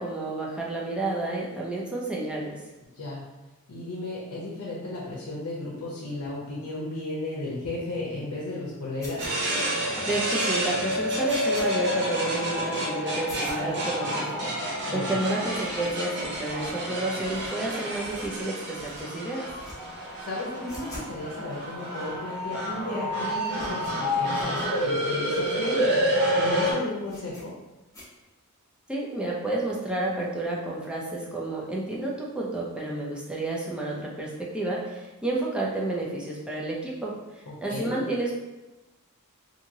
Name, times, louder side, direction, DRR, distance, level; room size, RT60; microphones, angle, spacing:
voice 1, 0.0-2.6 10.1-14.4 14.9-19.5 28.9-37.1 37.6-38.3, right 2 dB, 5° right, -4 dB, 0.4 m, -30 dB
voice 2, 3.7-9.3 14.9-15.1 20.2-25.9 26.3-27.5 37.5-38.0, left 2 dB, 75° left, -5 dB, 0.6 m, -34 dB
sound 1, 9.0-9.6 10.1-10.2 10.6-10.7 11.0-11.7 12.1-12.2 12.6-12.7 13.1-13.6 14.1-14.2 14.4-14.5 14.7-14.8 15.1-15.2 15.4-16.7 17.1-18.5 18.7-19.0 19.4-19.8 20.0-21.2 21.4-21.5 22.1-22.2 22.4-22.8 23.1-24.7 25.1-25.2 25.4-25.5 26.0-26.2 26.4-26.5 27.1-27.4 27.9-28.0, left 1 dB, 15° left, 0.8 m, -46 dB
sound 2, 9.2-26.7, equal, 50° right, 0.6 m, -29 dB
2.8 x 2.7 x 2.6 m, 1.1 s
head